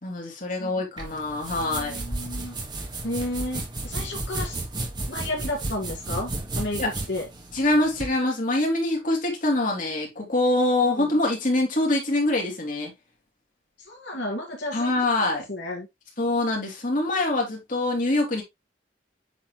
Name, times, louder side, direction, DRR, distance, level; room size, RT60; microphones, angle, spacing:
voice 1, 0.0-2.0 6.8-6.9 7.5-12.9 14.7-15.4 16.2-18.4, left 2 dB, 50° left, 3.0 m, -24 dB
sound 1, 1.0-8.1, right 2 dB, 25° right, 1.6 m, -33 dB
voice 2, 1.4-2.6 3.0-4.6 5.1-6.3 6.6-7.3 10.8-11.1 13.9-15.9, left 1 dB, 80° left, 2.2 m, -32 dB
8.2 x 4.3 x 3.1 m
head